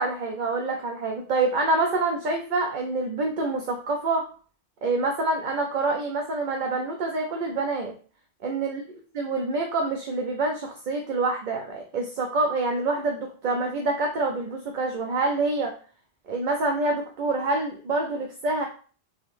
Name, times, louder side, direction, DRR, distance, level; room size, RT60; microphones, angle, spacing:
voice 1, 0.0-4.3 4.8-7.9 8.4-8.8 9.1-15.7 16.3-18.7, right 3 dB, 50° right, 2 dB, 0.7 m, -26 dB
3.9 x 2.9 x 3.3 m, 0.40 s
omnidirectional pair, 1.1 m